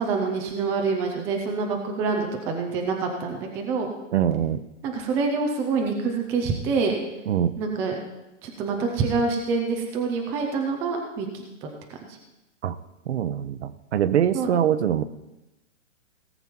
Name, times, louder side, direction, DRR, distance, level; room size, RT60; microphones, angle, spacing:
voice 1, 0.0-3.9 4.8-7.0 7.6-8.0 8.4-11.7 14.3-14.5, right 4 dB, 5° right, 2 dB, 0.4 m, -26 dB
voice 2, 4.1-4.6 7.3-7.5 12.6-12.7 13.1-15.0, right 9 dB, 60° right, 13 dB, 0.9 m, -23 dB
17.5 x 7.0 x 4.4 m, 0.96 s
hypercardioid pair, 140°, 39 cm